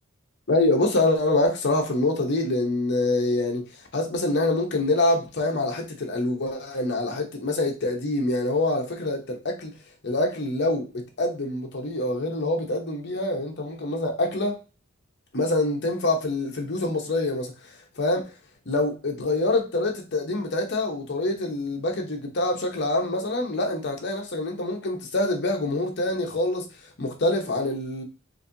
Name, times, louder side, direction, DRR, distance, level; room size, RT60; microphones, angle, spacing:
voice 1, 0.5-3.6 3.9-9.7 10.0-10.8 11.2-14.6 15.3-18.2 18.7-26.6 27.0-28.0, left 2 dB, 55° left, 0.8 m, -25 dB
4.1 x 2.6 x 2.7 m
head